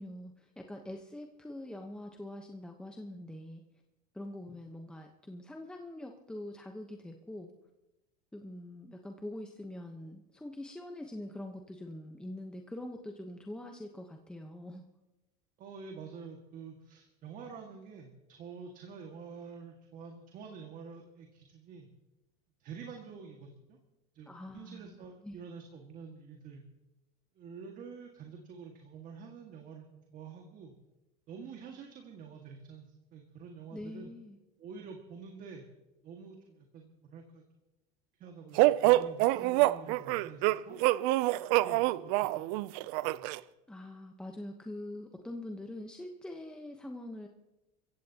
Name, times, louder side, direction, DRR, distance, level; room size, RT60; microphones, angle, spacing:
voice 1, 0.0-3.6 4.1-7.5 8.3-14.8 24.3-24.9 25.2-25.4 33.7-34.4 43.7-47.3, left 1 dB, 5° left, 3 dB, 1.0 m, -44 dB
voice 2, 15.6-21.9 22.6-23.8 24.1-26.6 27.4-30.7 31.3-34.1 34.6-35.6 36.0-37.4 38.2-40.8 41.4-43.2, right 5 dB, 45° right, 2 dB, 1.9 m, -48 dB
sound 1, 38.6-43.4, right 18 dB, 65° right, 0.5 m, -26 dB
24.5 x 15.5 x 2.9 m, 0.99 s
supercardioid pair, 125°, 20 cm